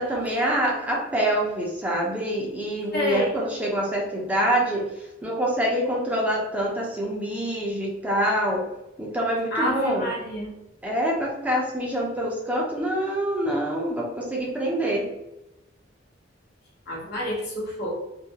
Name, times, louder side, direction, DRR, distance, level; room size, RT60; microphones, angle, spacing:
voice 1, 0.0-4.9 5.2-8.6 9.0-10.1 10.8-15.1, right 1 dB, 10° right, -3 dB, 0.5 m, -25 dB
voice 2, 2.9-3.3 9.5-10.5 16.9-17.9, left 1 dB, 60° left, -4 dB, 0.9 m, -28 dB
2.3 x 2.2 x 2.8 m, 0.91 s
head